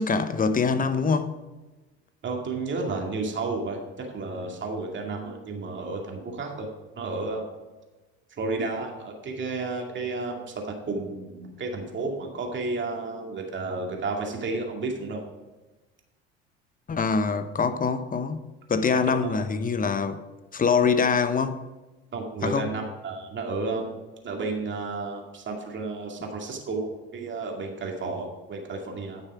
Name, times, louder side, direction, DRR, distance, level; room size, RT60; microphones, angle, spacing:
voice 1, 0.0-1.4 16.9-18.4 18.7-20.2 20.5-21.6 22.4-22.7, left 5 dB, 25° left, 0.9 m, -24 dB
voice 2, 2.2-6.7 7.0-7.4 8.4-10.4 10.9-15.2 19.2-19.4 22.1-23.9 24.2-29.2, right 3 dB, 35° right, 2.2 m, -32 dB
9.8 x 6.5 x 4.8 m
hypercardioid pair, 70°, 31 cm